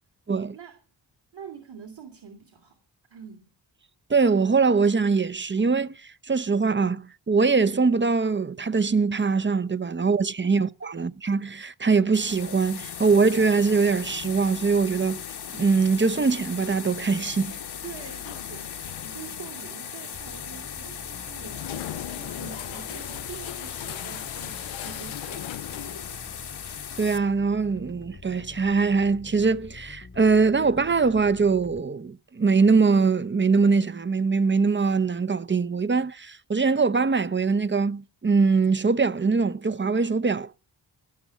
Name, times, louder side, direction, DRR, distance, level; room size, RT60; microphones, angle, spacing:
voice 1, 1.3-2.8 3.1-3.5 10.8-10.9 17.8-18.7 19.0-26.4, right 7 dB, 60° right, 2.6 m, -45 dB
voice 2, 4.1-10.7 10.9-15.2 15.5-17.6 27.0-40.5, right 4 dB, 25° right, 0.6 m, -22 dB
sound 1, 12.1-27.2, left 7 dB, 60° left, 1.0 m, -38 dB
sound 2, 12.2-27.2, left 13 dB, 80° left, 0.5 m, -42 dB
sound 3, 20.1-31.8, left 4 dB, 25° left, 0.9 m, -46 dB
17.0 x 6.2 x 7.0 m
cardioid pair, 60°, 45 cm